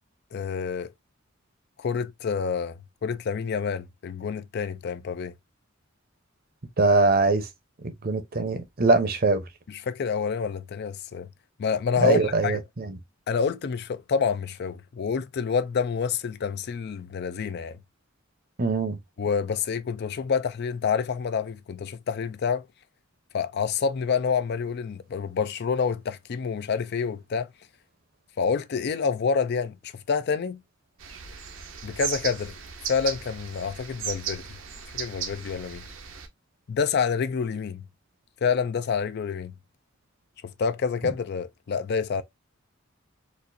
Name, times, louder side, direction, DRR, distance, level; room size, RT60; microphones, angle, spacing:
voice 1, 0.3-0.9 1.8-2.8 3.0-5.3 9.7-11.3 11.6-12.6 13.3-17.8 19.2-22.6 23.3-27.5 28.4-30.6 31.8-32.5 32.9-34.4 34.9-35.8 36.7-37.8 38.4-39.5 40.6-42.2, left 6 dB, 55° left, 0.4 m, -27 dB
voice 2, 6.8-7.5 8.0-9.4 12.0-12.9 18.6-19.0, right 3 dB, 50° right, 0.7 m, -22 dB
sound 1, 31.0-36.3, right 7 dB, 75° right, 0.8 m, -36 dB
4.2 x 2.5 x 2.5 m
head